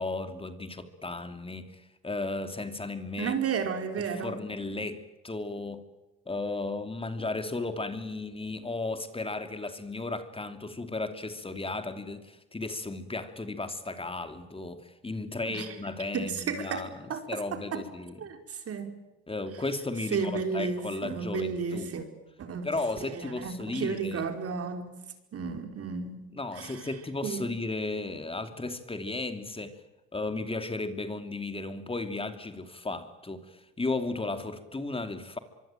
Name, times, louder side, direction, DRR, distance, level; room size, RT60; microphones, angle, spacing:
voice 1, 0.0-3.3 4.2-5.8 6.3-16.9 17.3-18.1 19.3-21.9 22.6-24.2 26.3-29.8 30.1-35.4, left 2 dB, 20° left, 2.9 m, -35 dB
voice 2, 3.2-4.4 15.5-15.7 16.1-17.2 17.5-17.8 18.2-18.9 20.1-22.1 22.4-22.7 23.1-25.0 25.3-26.2 26.5-26.9 27.2-27.5, right 5 dB, 50° right, 4.7 m, -33 dB
24.5 x 24.0 x 9.1 m
supercardioid pair, 70°, 30 cm